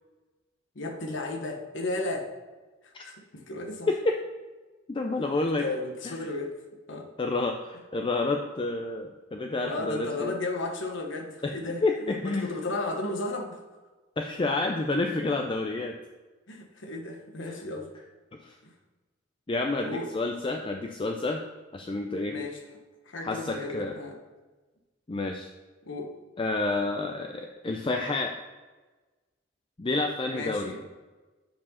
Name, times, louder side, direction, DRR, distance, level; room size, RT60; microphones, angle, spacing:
voice 1, 0.7-2.3 2.8-3.9 5.6-6.5 6.9-7.1 9.7-13.6 16.5-17.9 18.6-18.7 19.8-20.1 22.3-22.6 23.1-24.2 25.8-26.1 30.3-30.9, left 2 dB, 70° left, 3 dB, 1.2 m, -34 dB
voice 2, 3.9-4.2 4.9-5.6 7.2-10.3 11.4-11.5 11.8-12.5 14.2-15.9 18.5-18.6 19.5-21.4 21.7-22.4 23.2-24.0 25.1-25.5 26.4-28.4 29.8-30.7, left 2 dB, 25° left, 3 dB, 0.5 m, -29 dB
7.5 x 4.8 x 5.6 m, 1.2 s
head